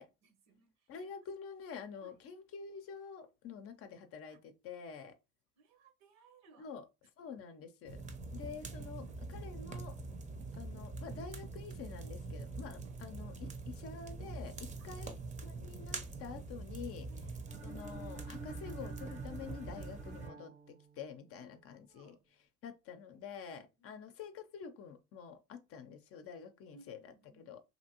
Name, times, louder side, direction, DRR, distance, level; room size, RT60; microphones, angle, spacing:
voice 1, 0.0-1.1 2.0-2.2 4.3-4.4 5.6-6.8 8.4-8.6 9.0-9.3 10.1-10.4 12.8-13.0 14.8-15.1 17.1-17.6 21.3-22.2 23.5-24.0 26.7-27.5, right 3 dB, 60° right, 0.9 m, -65 dB
voice 2, 0.9-5.2 6.6-6.8 7.2-8.0 8.3-10.0 10.6-15.1 15.4-17.1 17.6-22.2 22.6-27.6, left 6 dB, 50° left, 0.6 m, -48 dB
sound 1, 7.9-20.3, right 3 dB, 25° right, 0.7 m, -44 dB
sound 2, 17.5-21.4, right 4 dB, 80° right, 1.1 m, -51 dB
2.8 x 2.5 x 2.8 m
hypercardioid pair, 75°, 30 cm